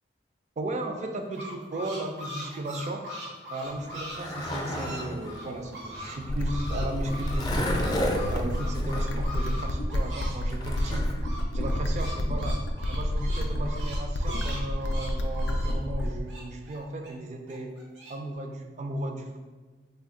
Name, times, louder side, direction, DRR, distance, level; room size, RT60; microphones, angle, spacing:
voice 1, 0.6-3.0 3.5-7.9 8.3-11.1 11.5-12.6 12.9-17.8 18.1-19.4, right 1 dB, 40° right, 4 dB, 0.3 m, -35 dB
sound 1, 1.0-6.2 6.4-10.4 10.6-17.1 17.5-18.1, equal, 85° right, 0.8 m, -41 dB
Skateboard, 3.7-11.1, left 1 dB, 25° left, 0.4 m, -34 dB
sound 2, 6.3-16.3, left 1 dB, 90° left, 0.4 m, -29 dB
3.3 x 2.2 x 3.6 m, 1.3 s
head